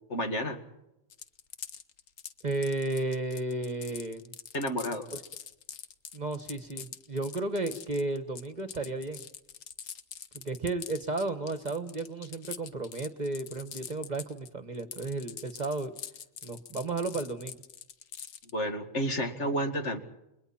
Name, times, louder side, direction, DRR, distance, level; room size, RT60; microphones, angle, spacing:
voice 1, 0.1-0.6 4.5-5.1 18.5-20.0, equal, 60° left, 5 dB, 2.5 m, -30 dB
sound 1, 1.1-14.5 14.7-18.5, left 8 dB, 85° left, 1.4 m, -44 dB
voice 2, 2.4-4.3 5.1-5.2 6.1-9.2 10.4-15.9 16.4-17.6, right 2 dB, 35° right, 10 dB, 1.3 m, -33 dB
29.5 x 23.0 x 4.3 m, 0.90 s
omnidirectional pair, 1.3 m